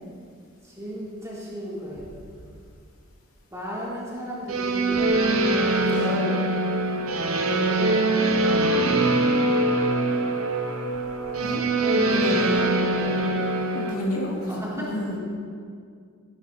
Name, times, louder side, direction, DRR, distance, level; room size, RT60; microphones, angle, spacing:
voice 1, 0.6-2.1 3.5-5.2 5.7-6.4 7.4-8.3 12.9-13.3 14.0-14.2 14.5-15.2, equal, 15° right, -8 dB, 3.9 m, -34 dB
sound 1, 4.5-13.9, right 2 dB, 80° right, 1.2 m, -23 dB
voice 2, 5.8-6.2 11.4-11.6 11.9-12.7 13.7-14.4 14.7-15.2, left 1 dB, 85° left, -2 dB, 2.7 m, -30 dB
16.0 x 12.0 x 4.3 m, 2.2 s
head